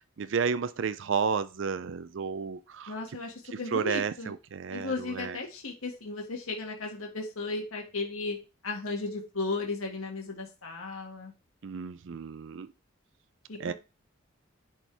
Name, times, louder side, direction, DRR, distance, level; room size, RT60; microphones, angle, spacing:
voice 1, 0.2-3.0 3.5-5.4 11.6-12.7 13.6-13.7, right 6 dB, 65° right, 0.4 m, -32 dB
voice 2, 2.9-4.3 4.7-8.4 8.6-11.3 13.5-13.7, left 3 dB, 90° left, 2.0 m, -35 dB
10.5 x 4.4 x 3.4 m
head